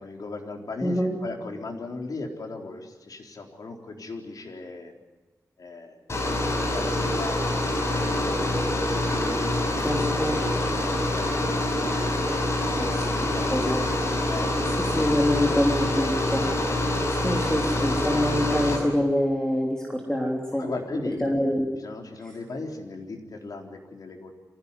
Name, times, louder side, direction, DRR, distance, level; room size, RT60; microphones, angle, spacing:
voice 1, 0.0-4.9 5.6-6.1 6.7-7.5 8.0-8.9 9.2-10.4 10.9-12.0 12.9-13.7 14.2-15.2 20.6-21.3 21.8-24.3, left 3 dB, 65° left, 2 dB, 4.1 m, -37 dB
voice 2, 0.8-1.1 9.8-10.3 12.8-12.9 13.5-13.8 15.0-16.4 17.1-20.6 21.2-21.7, equal, 10° left, -1 dB, 3.5 m, -25 dB
sound 1, 6.1-18.8, left 1 dB, 45° left, 5.9 m, -26 dB
25.0 x 16.5 x 9.9 m, 1.2 s
wide cardioid pair, 115°, 7 cm